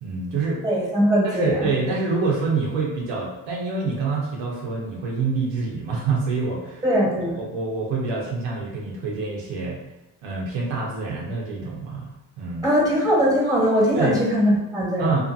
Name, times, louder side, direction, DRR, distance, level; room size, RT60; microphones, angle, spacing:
voice 1, 0.0-0.6 1.2-6.8 7.4-9.8 10.2-12.6 13.9-14.2 15.0-15.2, right 4 dB, 80° right, -2 dB, 0.8 m, -26 dB
voice 2, 0.6-1.7 6.8-7.4 12.6-15.2, equal, 10° right, -4 dB, 1.3 m, -20 dB
2.5 x 2.5 x 2.6 m, 1.0 s
supercardioid pair, 60°, 44 cm